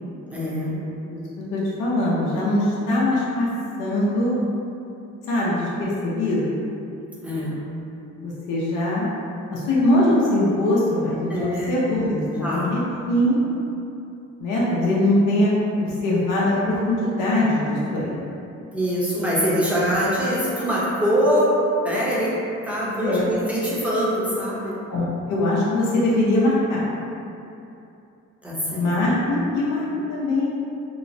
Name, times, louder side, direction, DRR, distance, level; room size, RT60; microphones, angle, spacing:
voice 1, 0.3-0.8 7.2-7.6 11.3-11.7 12.4-12.7 18.7-21.5 21.8-22.3 22.6-24.8 28.4-28.9, equal, 5° right, -8 dB, 0.7 m, -23 dB
voice 2, 1.5-3.5 3.8-4.4 5.3-6.6 8.2-9.1 9.5-12.8 13.1-13.4 14.4-15.5 15.8-18.2 23.0-23.2 24.9-26.9 28.7-30.5, left 1 dB, 80° left, -7 dB, 0.6 m, -22 dB
3.0 x 2.1 x 2.6 m, 2.7 s
cardioid pair, 90°, 30 cm